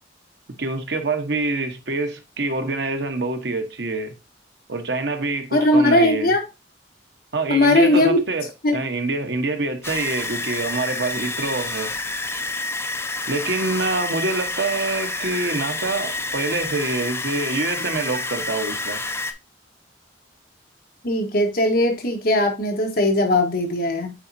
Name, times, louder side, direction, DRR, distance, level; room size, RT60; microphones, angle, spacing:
voice 1, 0.6-4.1 4.7-6.3 7.3-11.9 13.3-19.0, right 3 dB, 75° right, 1.2 m, -26 dB
voice 2, 5.5-6.4 7.5-8.2 8.6-8.8 21.0-24.1, left 1 dB, 55° left, 1.4 m, -19 dB
sound 1, 9.8-19.3, left 2 dB, 15° left, 0.7 m, -29 dB
8.8 x 4.2 x 2.7 m
head